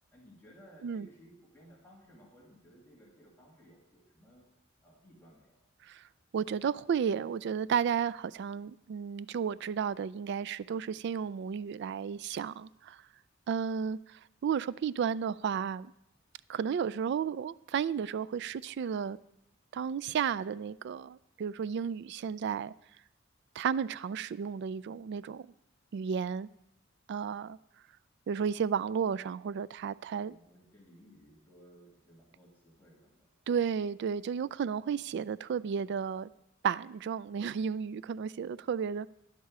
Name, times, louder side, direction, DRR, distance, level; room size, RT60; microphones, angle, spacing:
voice 1, 0.1-4.5 4.8-5.6 30.2-33.3, equal, 10° left, 2.3 m, -58 dB
voice 2, 6.3-13.0 13.5-15.9 16.5-19.2 19.7-22.7 23.6-25.5 25.9-26.5 27.1-27.6 28.3-30.4 33.5-36.3 36.6-39.1, right 7 dB, 60° right, 0.3 m, -33 dB
11.0 x 10.5 x 4.8 m
head